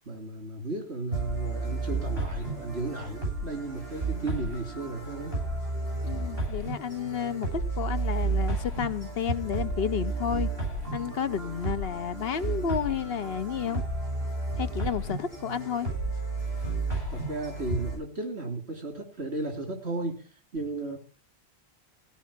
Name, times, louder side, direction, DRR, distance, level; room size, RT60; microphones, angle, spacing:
voice 1, 0.1-5.3 17.1-20.2 20.5-21.0, right 2 dB, 85° right, 3.5 m, -34 dB
sound 1, 1.1-18.0, right 3 dB, 65° right, 7.8 m, -32 dB
voice 2, 6.0-10.5 10.9-13.8 14.6-15.9, left 8 dB, 70° left, 1.1 m, -31 dB
16.0 x 5.6 x 8.7 m
omnidirectional pair, 1.1 m